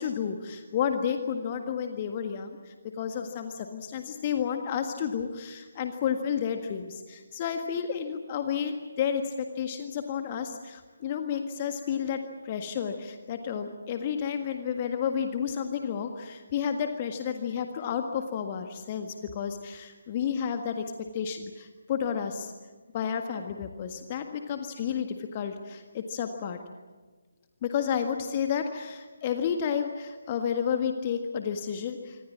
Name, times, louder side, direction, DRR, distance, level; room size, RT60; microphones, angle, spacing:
voice 1, 0.0-12.2 12.4-20.8 21.1-22.5 22.9-26.6 27.6-32.2, left 7 dB, 25° left, 6 dB, 1.7 m, -31 dB
26.0 x 25.5 x 7.5 m, 1.3 s
figure-of-eight pair, 145°, 0 cm